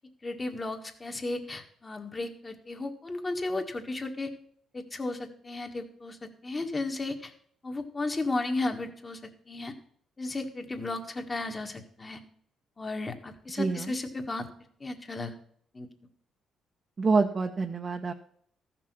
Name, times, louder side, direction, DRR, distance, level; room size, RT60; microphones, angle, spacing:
voice 1, 0.2-4.3 4.7-7.3 7.6-9.2 9.5-9.7 10.2-12.2 12.8-14.5 14.8-15.3 15.7-15.9, left 2 dB, 25° left, 5 dB, 1.7 m, -34 dB
voice 2, 13.5-13.9 17.0-18.1, right 4 dB, 35° right, 3 dB, 0.9 m, -27 dB
14.0 x 6.1 x 6.1 m, 0.65 s
cardioid pair, 90°, 0 cm